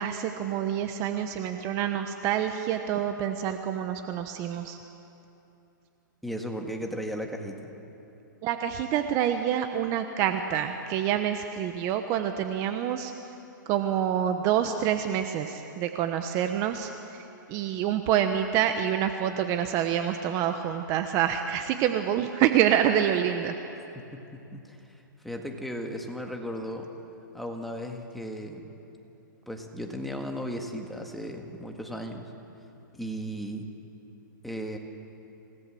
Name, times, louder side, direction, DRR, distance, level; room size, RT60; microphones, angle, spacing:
voice 1, 0.0-4.8 8.4-13.1 13.7-16.9 17.5-23.5, right 10 dB, 30° right, 7 dB, 1.0 m, -27 dB
voice 2, 6.2-7.6 24.0-25.0 25.2-26.9 27.3-28.7 29.5-32.3 32.9-33.7 34.4-34.8, equal, ahead, 2 dB, 1.9 m, -36 dB
27.5 x 18.0 x 7.7 m, 2.9 s
hypercardioid pair, 150°, 11 cm